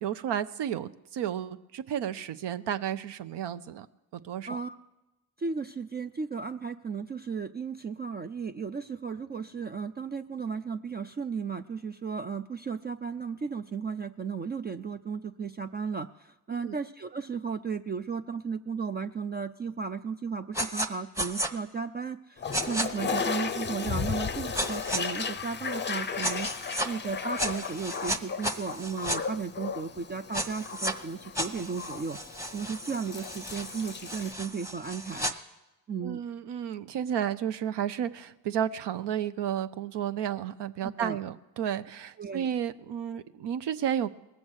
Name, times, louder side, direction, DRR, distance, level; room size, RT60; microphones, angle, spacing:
voice 1, 0.0-3.9 4.1-4.6 16.5-16.8 36.0-44.1, right 9 dB, 60° right, 12 dB, 0.6 m, -32 dB
voice 2, 5.4-26.5 26.8-32.2 32.5-35.3 35.9-36.2 40.8-41.2 42.2-42.5, right 5 dB, 25° right, 9 dB, 0.3 m, -35 dB
sound 1, 20.5-20.9 21.2-21.5 22.5-22.9 24.5-25.0 26.2-26.9 27.4-29.2 30.3-30.9 31.3-35.3, equal, 5° right, 1.0 m, -33 dB
Toilet flush, 22.4-34.3, left 6 dB, 20° left, 0.6 m, -35 dB
19.0 x 7.2 x 6.3 m, 0.99 s
hypercardioid pair, 50°, 49 cm